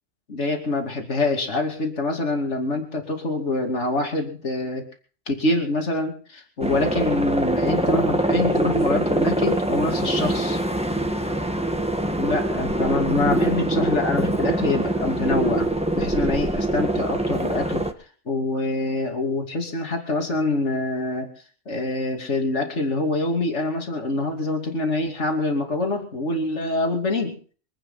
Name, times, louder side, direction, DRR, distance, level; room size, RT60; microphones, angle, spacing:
voice 1, 0.3-4.9 5.3-10.6 12.2-15.7 15.9-17.9 18.3-21.3 21.7-27.4, left 2 dB, 70° left, 3 dB, 3.1 m, -25 dB
sound 1, 6.6-17.9, right 1 dB, 5° right, 1.4 m, -24 dB
25.0 x 9.2 x 5.8 m, 0.42 s
omnidirectional pair, 1.3 m